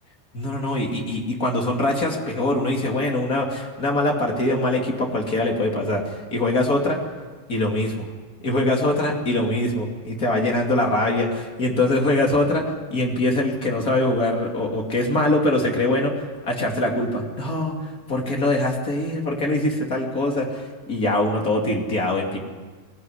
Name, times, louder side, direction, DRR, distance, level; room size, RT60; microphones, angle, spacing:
voice 1, 0.3-7.0 7.5-8.1 8.4-22.4, left 1 dB, 30° left, 0 dB, 1.8 m, -23 dB
22.5 x 17.0 x 9.9 m, 1.4 s
omnidirectional pair, 5.7 m